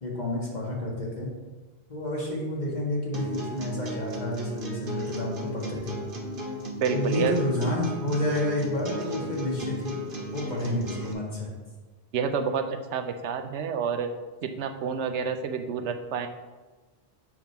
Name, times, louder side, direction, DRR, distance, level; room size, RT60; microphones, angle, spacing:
voice 1, 0.0-1.3 1.9-6.0 6.9-10.0 10.3-11.5, left 1 dB, 40° left, -4 dB, 1.9 m, -30 dB
sound 1, 3.1-11.1, equal, 55° right, 1.2 m, -35 dB
voice 2, 6.8-7.3 12.1-14.1 14.4-16.3, right 6 dB, 85° right, 7 dB, 1.0 m, -29 dB
7.3 x 3.6 x 5.8 m, 1.3 s
omnidirectional pair, 1.1 m